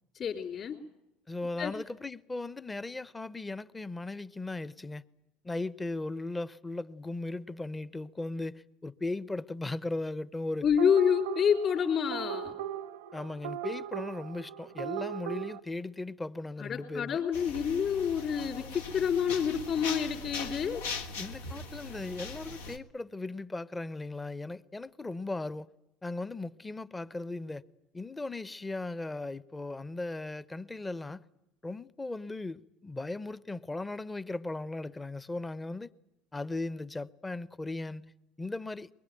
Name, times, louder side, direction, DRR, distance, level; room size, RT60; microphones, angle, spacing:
voice 1, 0.1-0.8 1.6-1.8 10.6-12.5 16.6-20.8, left 7 dB, 45° left, 3.9 m, -28 dB
voice 2, 1.3-5.0 5.4-10.6 13.1-17.2 21.2-25.7 26.0-27.6 27.9-31.2 31.6-35.9 36.3-38.1 38.4-38.9, left 2 dB, 15° left, 0.9 m, -37 dB
sound 1, 10.8-15.6, right 10 dB, 75° right, 0.8 m, -38 dB
sound 2, 17.3-22.8, left 4 dB, 80° left, 1.4 m, -40 dB
23.0 x 21.5 x 9.2 m
hypercardioid pair, 75°, 0 cm